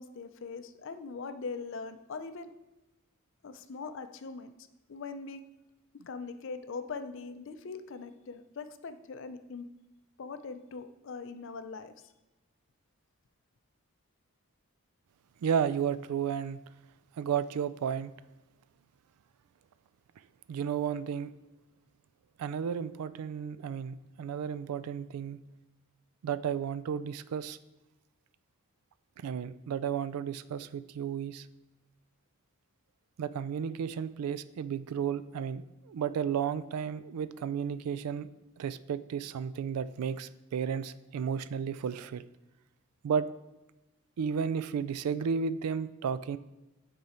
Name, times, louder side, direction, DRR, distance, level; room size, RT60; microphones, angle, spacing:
voice 1, 0.0-2.5 3.4-4.5 4.9-5.4 5.9-9.7 10.2-11.9, left 4 dB, 55° left, 10 dB, 0.4 m, -41 dB
voice 2, 15.4-16.6 17.2-18.1 20.5-21.3 22.4-25.4 26.2-27.6 29.2-31.4 33.2-38.3 38.6-42.2 43.0-43.3 44.2-46.4, right 7 dB, 90° right, 15 dB, 0.3 m, -33 dB
8.7 x 3.8 x 4.3 m, 1.0 s
head